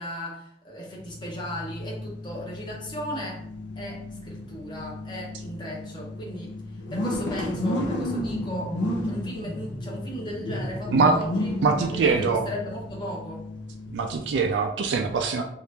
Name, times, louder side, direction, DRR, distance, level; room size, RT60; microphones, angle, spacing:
voice 1, 0.0-3.5 3.8-11.5 11.8-13.4, equal, 25° left, -3 dB, 0.8 m, -36 dB
sound 1, 1.0-14.4, left 1 dB, 85° left, 0.6 m, -32 dB
voice 2, 11.6-12.4 13.9-15.4, right 4 dB, 80° right, 3 dB, 0.3 m, -23 dB
2.8 x 2.4 x 3.3 m, 0.70 s
head